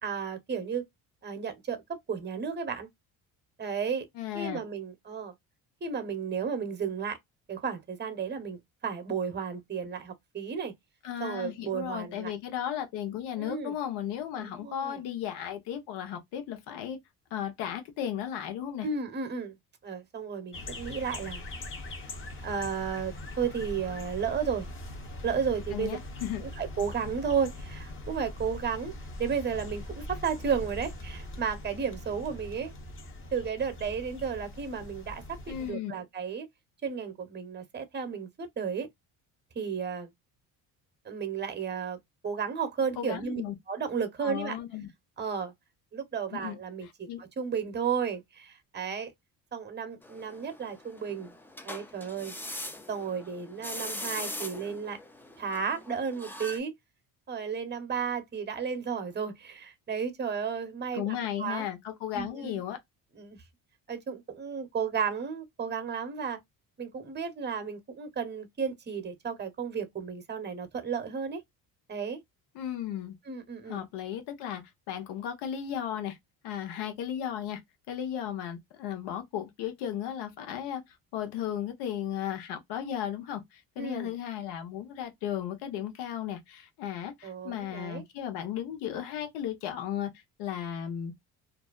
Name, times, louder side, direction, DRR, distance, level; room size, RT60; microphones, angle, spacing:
voice 1, 0.0-0.8 1.2-1.8 2.1-2.9 3.6-4.1 4.3-5.3 5.8-7.2 7.5-10.7 11.2-12.3 13.4-13.7 14.4-15.0 18.8-19.6 19.8-21.4 22.4-24.7 25.2-26.0 26.4-28.9 29.2-32.7 33.3-36.5 36.8-38.9 39.5-40.1 41.0-42.0 42.2-44.6 45.2-45.5 45.9-49.1 49.5-51.3 51.6-52.3 52.9-55.0 55.4-56.7 57.3-61.7 62.1-62.6 63.1-63.4 63.9-66.4 66.8-71.4 71.9-72.2 73.3-73.8 83.8-84.1 87.2-88.0, right 6 dB, 25° right, 0.9 m, -33 dB
voice 2, 4.2-4.6 11.0-17.0 17.3-18.9 25.7-26.4 35.5-35.9 43.0-43.5 44.2-44.9 46.3-46.6 47.1-47.2 60.9-62.8 72.5-73.1 73.7-76.2 76.4-77.6 77.9-80.8 81.1-91.1, left 10 dB, 80° left, 0.9 m, -35 dB
sound 1, 20.5-35.7, left 1 dB, 30° left, 0.9 m, -41 dB
sound 2, 50.0-56.6, left 1 dB, 5° left, 0.4 m, -41 dB
2.6 x 2.1 x 2.3 m
supercardioid pair, 85°, 39 cm